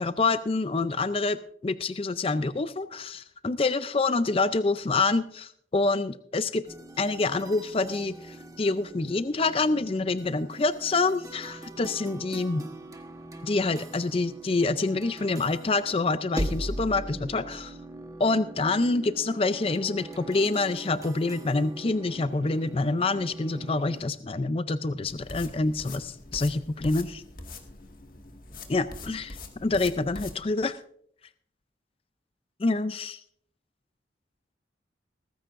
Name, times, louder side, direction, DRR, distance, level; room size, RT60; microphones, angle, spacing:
voice 1, 0.0-6.6 7.0-12.6 13.4-17.7 18.2-27.2 28.7-30.8 32.6-33.2, left 3 dB, 30° left, 12 dB, 0.5 m, -27 dB
sound 1, 6.6-24.0, right 1 dB, 20° right, 1.2 m, -40 dB
sound 2, 25.1-30.4, left 2 dB, 50° left, 1.9 m, -43 dB
18.0 x 15.0 x 2.6 m, 0.64 s
head